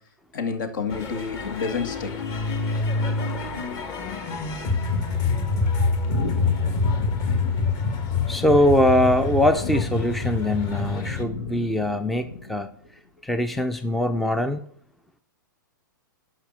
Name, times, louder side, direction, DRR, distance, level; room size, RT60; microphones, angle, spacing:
voice 1, 0.3-2.2 2.7-2.8, left 5 dB, 65° left, 7 dB, 2.1 m, -29 dB
sound 1, 0.9-11.2, left 4 dB, 30° left, 1.5 m, -26 dB
sound 2, 6.0-12.8, left 4 dB, 85° left, 1.3 m, -37 dB
voice 2, 8.3-12.7 13.2-14.6, left 1 dB, ahead, 9 dB, 0.5 m, -22 dB
12.0 x 5.6 x 7.4 m, 0.66 s
hypercardioid pair, 135°, 11 cm